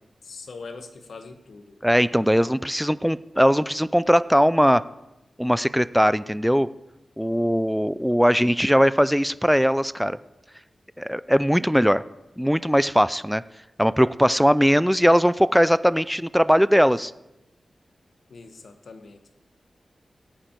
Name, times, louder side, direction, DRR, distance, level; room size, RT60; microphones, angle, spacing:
voice 1, 0.2-1.7 18.3-19.3, left 4 dB, 75° left, 8 dB, 1.2 m, -42 dB
voice 2, 1.8-4.8 5.4-6.7 7.2-10.2 11.0-12.0 12.4-13.4 13.8-17.1, equal, ahead, 17 dB, 0.3 m, -20 dB
19.0 x 8.8 x 4.6 m, 0.97 s
wide cardioid pair, 110°, 0 cm